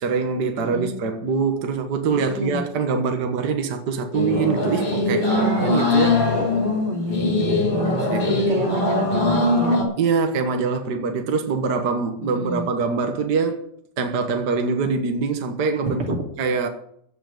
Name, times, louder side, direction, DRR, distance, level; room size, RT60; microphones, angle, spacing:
voice 1, 0.0-6.2 8.1-8.5 10.0-13.6 14.0-16.0 16.4-16.7, right 5 dB, 55° right, 1.8 m, -24 dB
voice 2, 0.6-0.9 2.1-2.6 5.0-5.6 6.5-9.8 12.2-12.7 15.8-16.2, equal, 80° right, 3.8 m, -28 dB
sound 1, 4.1-9.8, left 2 dB, 75° left, 5.0 m, -21 dB
15.5 x 6.1 x 9.0 m
omnidirectional pair, 2.4 m